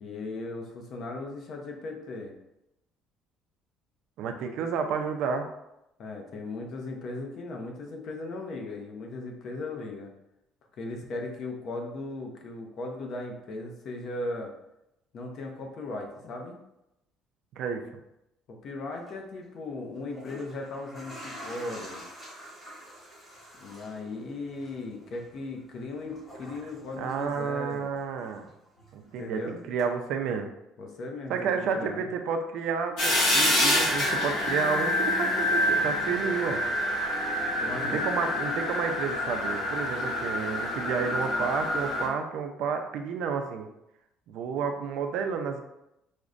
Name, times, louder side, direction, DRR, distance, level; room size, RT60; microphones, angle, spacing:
voice 1, 0.0-2.4 6.0-10.1 10.8-14.5 15.1-16.6 18.5-22.0 23.6-27.9 29.2-29.6 30.8-32.0 37.6-38.1, left 2 dB, 45° left, 2 dB, 0.5 m, -37 dB
voice 2, 4.2-5.5 17.6-17.8 27.0-28.5 28.9-30.5 31.3-36.6 37.9-43.7 44.3-45.6, right 6 dB, 60° right, 6 dB, 0.4 m, -31 dB
sound 1, 18.9-19.1 20.0-28.0 28.3-29.3 29.8-29.9, equal, 15° left, 1.2 m, -47 dB
sound 2, 33.0-42.1, left 1 dB, 75° left, 1.5 m, -27 dB
4.9 x 2.1 x 2.4 m, 0.87 s
cardioid pair, 175°, 0 cm